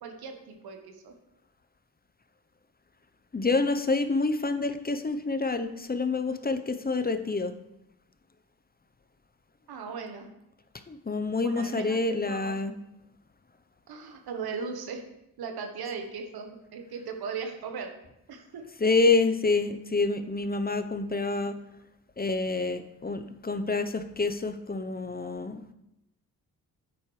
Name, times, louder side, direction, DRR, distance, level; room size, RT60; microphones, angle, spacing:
voice 1, 0.0-1.1 9.7-10.3 11.4-12.6 13.9-15.0 15.4-17.9 18.3-18.6, right 5 dB, 80° right, 4 dB, 1.3 m, -38 dB
voice 2, 3.3-7.5 10.9-12.7 18.8-21.6 22.2-25.7, left 3 dB, 25° left, 10 dB, 0.7 m, -27 dB
10.0 x 8.4 x 3.2 m, 0.85 s
cardioid pair, 55°, 38 cm